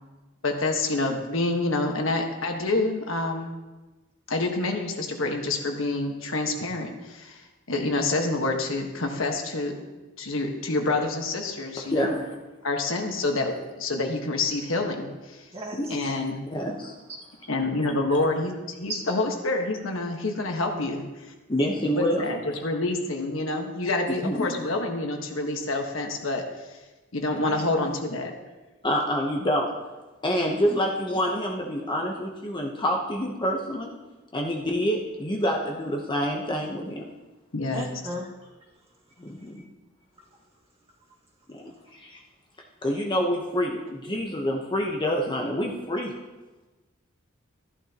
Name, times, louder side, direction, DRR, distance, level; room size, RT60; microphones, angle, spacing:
voice 1, 0.4-3.6 4.3-7.4 7.7-9.7 10.2-12.1 12.6-15.4 15.9-16.4 17.5-21.0 21.9-26.4 27.1-28.3 37.5-37.8, left 2 dB, 70° left, 3 dB, 1.4 m, -27 dB
voice 2, 11.9-12.4 15.7-15.9 16.5-16.9 21.5-22.2 24.1-24.5 28.8-29.7 30.2-33.9 34.3-37.1 39.2-39.6 41.5-42.2 42.8-46.1, equal, 25° left, 0 dB, 1.0 m, -27 dB
voice 3, 15.5-16.2 18.9-19.2 21.7-21.9 27.4-27.9 30.7-30.8 37.7-38.5 39.5-39.6, right 1 dB, 30° right, -3 dB, 1.9 m, -37 dB
14.5 x 11.5 x 2.9 m, 1.2 s
head